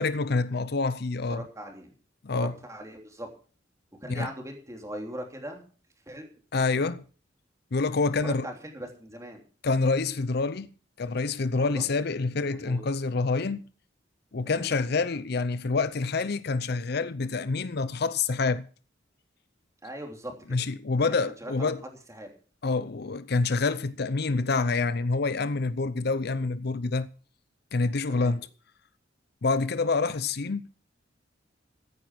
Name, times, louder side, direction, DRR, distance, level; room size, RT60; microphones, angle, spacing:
voice 1, 0.0-1.4 2.2-2.5 4.1-4.3 6.5-7.0 7.7-8.5 9.6-10.7 11.0-13.6 14.3-18.7 20.5-21.8 22.6-27.1 27.7-28.5 29.4-30.6, left 3 dB, 60° left, 0.6 m, -27 dB
voice 2, 1.3-1.9 2.3-3.3 4.0-5.6 6.1-6.3 8.2-9.4 11.6-11.9 12.5-12.8 14.4-14.7 19.8-20.6 21.0-21.7 22.1-22.3 28.1-28.3, right 1 dB, 15° right, 3.1 m, -40 dB
15.0 x 9.6 x 6.1 m
head